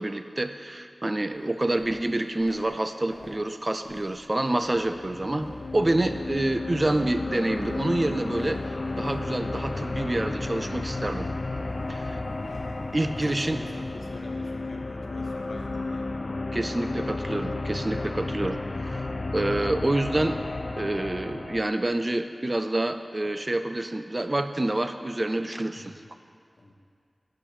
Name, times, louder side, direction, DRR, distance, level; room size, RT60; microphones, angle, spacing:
voice 1, 0.0-11.3 11.9-12.2 12.9-13.6 16.5-20.4 20.8-26.0, right 1 dB, 35° right, 9 dB, 0.3 m, -27 dB
Walk footsteps, 1.3-14.1, equal, ahead, 1.7 m, -49 dB
sound 1, 4.6-21.6, left 2 dB, 55° left, 0.4 m, -33 dB
voice 2, 12.2-16.3 25.7-26.0 26.6-26.7, left 1 dB, 70° left, 1 dB, 0.8 m, -44 dB
7.2 x 5.1 x 4.9 m, 2.2 s
wide cardioid pair, 70°, 0 cm